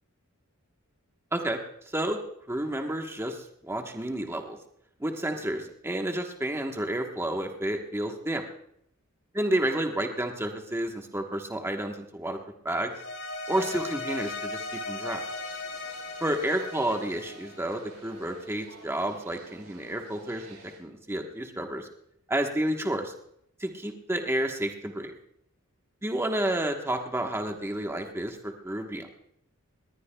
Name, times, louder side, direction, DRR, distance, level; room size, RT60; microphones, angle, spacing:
voice 1, 1.9-2.2 2.5-4.6 5.0-8.4 9.4-12.4 12.6-12.9 13.5-15.2 16.2-21.9 22.3-23.1 23.6-25.1 26.0-29.1, right 1 dB, 10° right, 3 dB, 1.1 m, -30 dB
sound 1, 12.9-18.2, left 3 dB, 75° left, 7.4 m, -37 dB
sound 2, 15.3-20.8, right 2 dB, 80° right, 3.2 m, -52 dB
20.5 x 18.5 x 2.3 m, 0.73 s
head